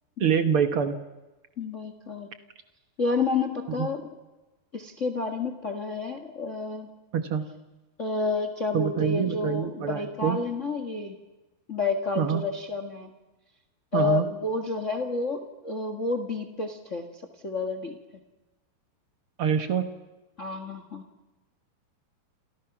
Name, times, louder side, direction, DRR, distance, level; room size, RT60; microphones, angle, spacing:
voice 1, 0.2-1.0 3.8-3.9 7.1-7.4 8.7-10.4 12.2-12.4 13.9-14.3 19.4-19.9, right 7 dB, 85° right, 8 dB, 1.2 m, -25 dB
voice 2, 1.6-2.3 3.0-4.0 4.7-6.9 8.0-11.2 11.7-13.1 13.9-17.1 17.4-18.0 20.4-21.0, left 3 dB, 85° left, 6 dB, 0.6 m, -30 dB
29.0 x 28.5 x 6.1 m, 1.1 s
omnidirectional pair, 4.6 m